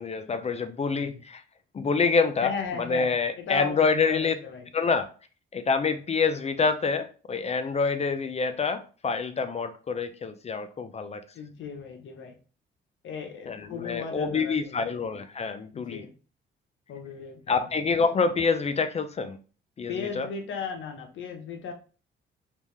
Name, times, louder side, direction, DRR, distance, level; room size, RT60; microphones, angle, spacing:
voice 1, 0.0-1.4 1.7-2.5 2.8-4.3 4.7-5.1 5.5-11.2 13.5-16.0 17.5-19.4 19.8-20.3, left 4 dB, 30° left, 0.4 m, -27 dB
voice 2, 2.4-4.7 11.3-12.3 13.0-14.9 15.7-16.1 16.9-17.8 19.9-21.7, left 6 dB, 70° left, 1.0 m, -36 dB
3.3 x 3.2 x 3.3 m
cardioid pair, 85°, 20 cm